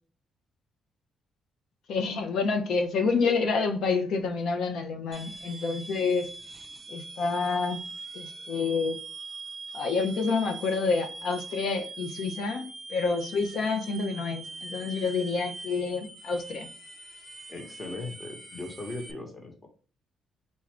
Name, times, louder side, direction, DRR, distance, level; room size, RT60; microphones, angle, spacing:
voice 1, 1.9-6.3 6.9-7.8 8.1-9.0 9.7-16.7, left 4 dB, 70° left, 0.7 m, -28 dB
sound 1, 5.1-19.1, right 3 dB, 25° right, 0.5 m, -42 dB
voice 2, 17.5-19.7, left 2 dB, 25° left, 1.1 m, -38 dB
4.0 x 2.5 x 3.3 m
cardioid pair, 90°, 0 cm